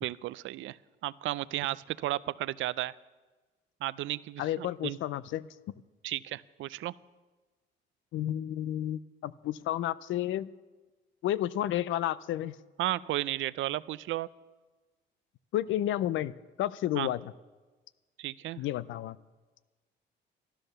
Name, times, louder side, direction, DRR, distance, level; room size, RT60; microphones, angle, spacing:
voice 1, 0.0-0.8 1.0-2.9 3.8-5.0 6.0-6.9 12.8-14.3 17.0-17.1 18.2-18.6, right 15 dB, 80° right, 18 dB, 0.4 m, -33 dB
voice 2, 4.4-5.5 8.1-10.5 11.2-12.5 15.5-16.3 16.6-17.3 18.6-19.2, left 12 dB, 80° left, 18 dB, 0.5 m, -31 dB
12.5 x 12.5 x 6.6 m, 1.2 s
cardioid pair, 90°, 20 cm